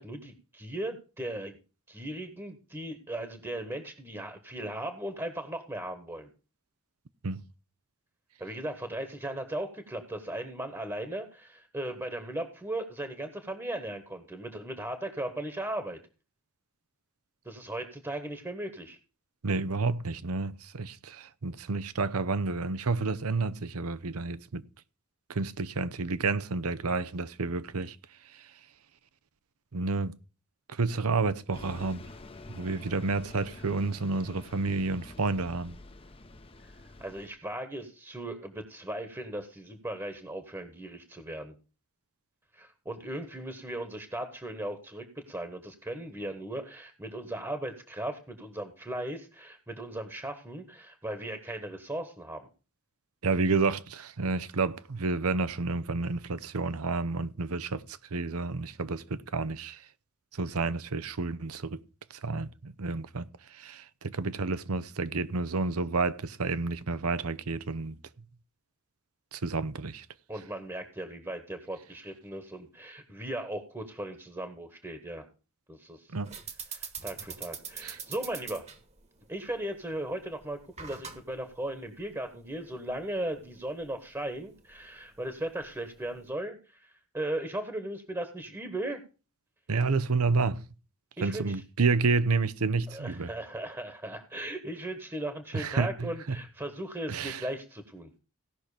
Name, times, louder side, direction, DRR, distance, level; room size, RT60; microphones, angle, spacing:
voice 1, 0.0-1.6 1.9-6.3 8.4-16.0 17.4-19.0 36.6-36.7 37.0-41.5 42.5-52.5 70.3-75.2 75.7-76.1 76.7-78.7 79.3-89.0 91.2-91.6 92.9-98.1, right 1 dB, 15° right, 1.3 m, -37 dB
voice 2, 19.4-24.6 25.3-28.0 29.7-30.1 30.7-32.0 32.5-35.7 53.2-57.8 58.1-59.8 60.3-61.8 62.2-63.3 63.5-68.0 69.3-70.1 76.1-76.3 77.8-78.0 89.7-90.6 91.2-93.3 95.5-96.1 97.1-97.4, right 4 dB, 80° right, 0.8 m, -30 dB
Bus, 31.5-37.3, left 2 dB, 25° left, 0.8 m, -48 dB
sound 1, 76.2-86.3, right 6 dB, 30° right, 1.4 m, -45 dB
17.0 x 6.0 x 4.9 m
head